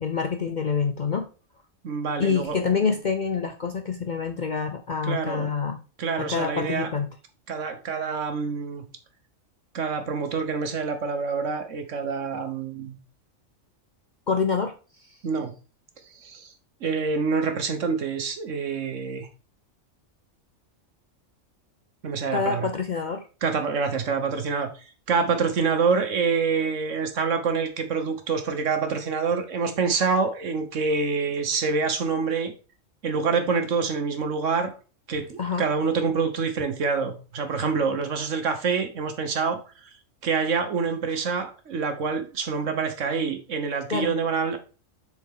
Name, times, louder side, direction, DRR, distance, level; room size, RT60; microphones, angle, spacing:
voice 1, 0.0-1.3 2.2-5.8 6.2-7.1 14.3-14.7 22.3-23.3 35.4-35.6 43.9-44.1, left 5 dB, 50° left, 0.6 m, -26 dB
voice 2, 1.8-2.8 5.0-5.5 6.0-6.9 7.5-8.8 9.7-13.0 15.2-15.5 16.2-16.5 16.8-19.3 22.0-22.7 23.4-32.5 33.0-34.7 35.1-39.6 40.2-44.6, right 5 dB, 65° right, 1.4 m, -26 dB
7.4 x 4.7 x 3.7 m
omnidirectional pair, 1.4 m